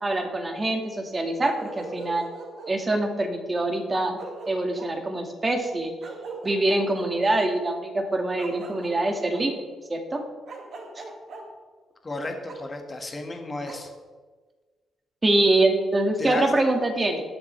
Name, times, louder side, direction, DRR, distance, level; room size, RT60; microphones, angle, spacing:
voice 1, 0.0-2.3 2.7-4.2 4.5-5.9 6.4-9.5 9.9-10.2 15.2-17.2, right 2 dB, 25° right, 3 dB, 1.9 m, -24 dB
Bark, 1.4-2.8 3.8-3.9 4.2-4.9 6.0-7.1 8.4-9.4 10.5-11.4 12.5-12.6 13.6-13.8, right 3 dB, 60° right, 2.1 m, -40 dB
voice 2, 12.0-13.9 16.2-16.5, left 2 dB, 25° left, 3 dB, 1.8 m, -33 dB
20.0 x 7.1 x 3.4 m, 1.4 s
cardioid pair, 100°, 0 cm